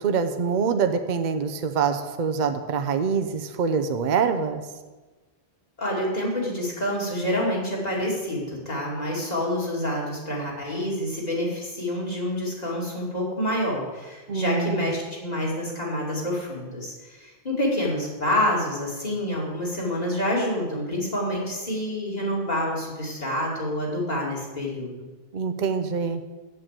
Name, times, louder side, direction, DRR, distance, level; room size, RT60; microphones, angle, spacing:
voice 1, 0.0-4.6 14.3-14.9 25.3-26.2, right 6 dB, 50° right, 8 dB, 0.8 m, -25 dB
voice 2, 5.8-24.9, left 1 dB, 40° left, -4 dB, 2.9 m, -27 dB
8.2 x 7.7 x 7.5 m, 1.2 s
omnidirectional pair, 1.0 m